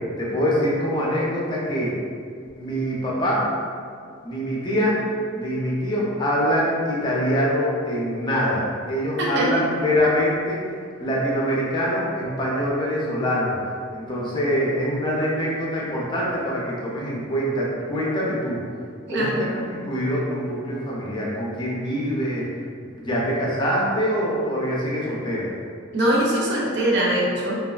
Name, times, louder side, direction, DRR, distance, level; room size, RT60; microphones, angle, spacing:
voice 1, 0.2-2.0 2.6-3.4 4.2-5.0 5.3-10.6 11.0-13.5 13.9-18.6 19.1-22.5 23.0-25.5, equal, 25° left, -5 dB, 0.5 m, -24 dB
voice 2, 19.1-19.4 25.9-27.6, right 1 dB, 60° right, -4 dB, 0.6 m, -22 dB
3.1 x 2.3 x 2.3 m, 2.2 s
head